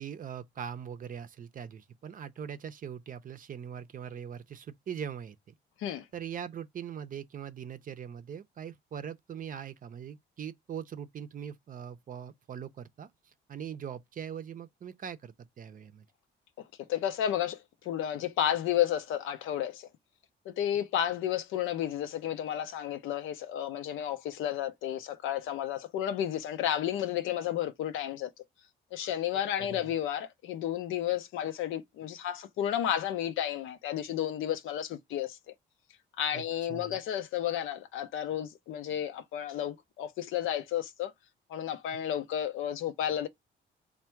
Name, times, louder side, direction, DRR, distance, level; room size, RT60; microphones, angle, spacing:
voice 1, 0.0-5.5 6.1-13.1 13.5-16.1 29.6-29.9 36.3-36.4 36.7-37.0, right 8 dB, 45° right, 0.5 m, -41 dB
voice 2, 16.9-19.9 20.5-28.3 28.9-35.5 36.2-41.1 41.5-43.3, left 10 dB, 85° left, 0.5 m, -32 dB
3.4 x 2.2 x 4.3 m
cardioid pair, 90°, 20 cm